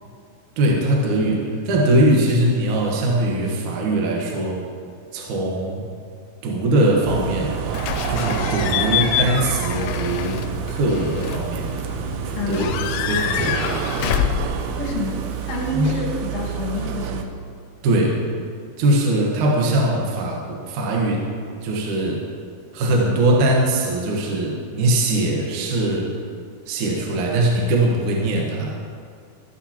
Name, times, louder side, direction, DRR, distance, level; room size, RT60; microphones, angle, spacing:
voice 1, 0.6-4.6 5.1-5.8 6.4-7.6 8.1-10.4 10.7-11.7 12.2-13.8 15.7-15.9 17.8-18.2 18.8-21.3 21.6-22.3 22.7-26.1 26.7-28.8, right 1 dB, 65° right, -2 dB, 1.9 m, -21 dB
sound 1, 7.0-17.2, right 8 dB, 90° right, 2.2 m, -28 dB
Slam / Squeak / Alarm, 7.7-15.7, left 10 dB, 85° left, 3.0 m, -27 dB
voice 2, 12.4-12.7 14.8-17.3, left 2 dB, 70° left, -2 dB, 3.7 m, -28 dB
14.0 x 14.0 x 2.9 m, 2.2 s
omnidirectional pair, 5.4 m